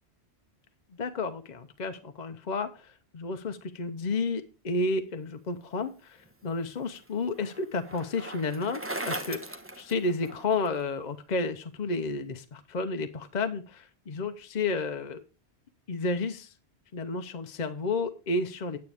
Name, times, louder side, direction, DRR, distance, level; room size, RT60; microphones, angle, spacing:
voice 1, 1.0-8.8 9.1-15.2 15.9-16.5 16.9-18.8, left 3 dB, 45° left, 8 dB, 0.8 m, -31 dB
Bicycle, 6.3-10.7, right 1 dB, 15° right, 0.9 m, -39 dB
9.5 x 9.5 x 3.4 m, 0.34 s
omnidirectional pair, 1.1 m